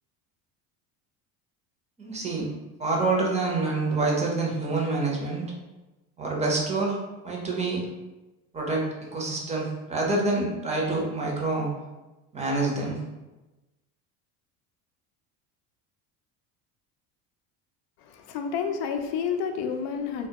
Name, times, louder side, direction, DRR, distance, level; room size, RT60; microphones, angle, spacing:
voice 1, 2.0-2.5 2.8-5.4 6.2-7.0 7.2-7.8 8.5-11.7 12.3-13.0, right 3 dB, 15° right, -2 dB, 0.6 m, -27 dB
voice 2, 18.0-20.3, left 6 dB, 65° left, 6 dB, 0.5 m, -30 dB
2.2 x 2.1 x 2.8 m, 1.1 s
supercardioid pair, 95°, 42 cm